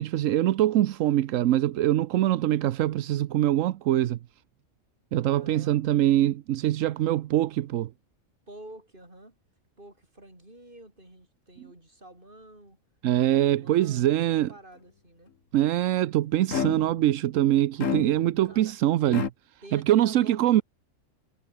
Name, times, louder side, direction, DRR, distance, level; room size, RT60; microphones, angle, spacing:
voice 1, 0.0-4.2 5.1-7.9 13.0-14.5 15.5-19.3 19.7-20.6, right 13 dB, 85° right, 1.0 m, -23 dB
voice 2, 5.3-5.8 8.5-9.4 9.8-12.8 13.3-15.3 18.4-18.7 19.6-20.6, right 1 dB, 40° right, 6.6 m, -48 dB
sound 1, 16.5-17.1 17.8-18.5 19.1-19.3, left 6 dB, 75° left, 1.9 m, -30 dB
omnidirectional pair, 1.3 m